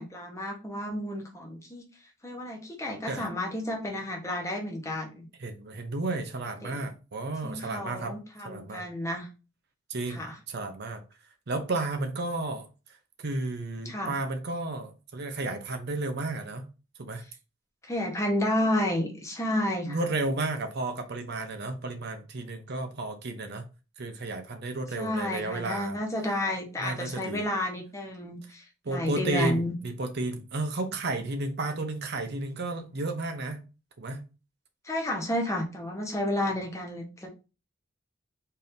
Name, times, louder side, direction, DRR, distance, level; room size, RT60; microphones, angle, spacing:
voice 1, 0.0-1.8 2.2-5.3 6.6-6.8 7.4-9.3 10.1-10.4 13.8-14.1 17.8-20.0 25.0-29.7 34.8-37.3, left 1 dB, 15° left, 0.9 m, -31 dB
voice 2, 5.4-8.2 8.4-8.8 9.9-11.0 11.5-12.7 13.2-16.7 17.0-17.2 19.9-23.6 24.0-26.0 26.8-27.5 28.8-33.6 34.0-34.2, right 2 dB, 55° right, 0.6 m, -32 dB
4.3 x 2.6 x 3.5 m
head